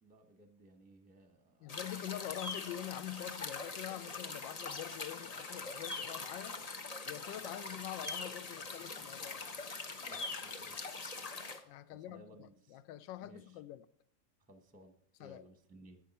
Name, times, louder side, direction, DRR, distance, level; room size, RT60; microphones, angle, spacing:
voice 1, 0.0-1.7 10.0-10.8 11.9-12.8 13.2-13.6 14.5-16.0, right 1 dB, 5° right, 0.7 m, -59 dB
voice 2, 1.6-6.6 7.1-9.5 11.6-13.8 15.2-15.4, left 13 dB, 85° left, 1.3 m, -45 dB
sound 1, 1.7-11.6, left 3 dB, 65° left, 0.3 m, -43 dB
11.0 x 8.5 x 4.2 m
omnidirectional pair, 2.0 m